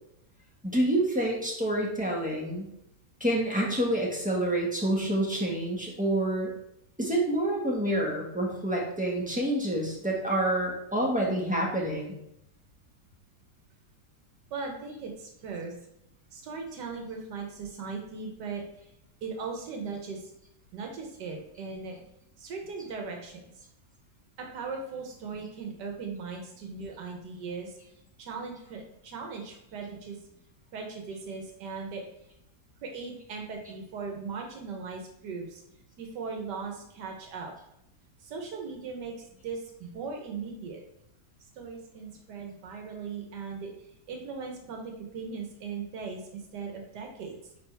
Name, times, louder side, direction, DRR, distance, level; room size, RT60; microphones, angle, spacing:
voice 1, 0.6-2.7 3.2-6.5 7.0-12.1, right 1 dB, 5° right, -3 dB, 1.2 m, -28 dB
voice 2, 14.5-15.7 16.3-18.6 19.2-20.3 20.7-22.0 22.4-23.5 24.4-27.8 28.2-30.2 30.7-32.0 32.8-35.6 36.0-37.5 38.2-40.8 41.5-43.7 44.1-47.4, right 4 dB, 90° right, 2 dB, 1.6 m, -38 dB
8.8 x 3.7 x 3.4 m, 0.80 s
omnidirectional pair, 1.8 m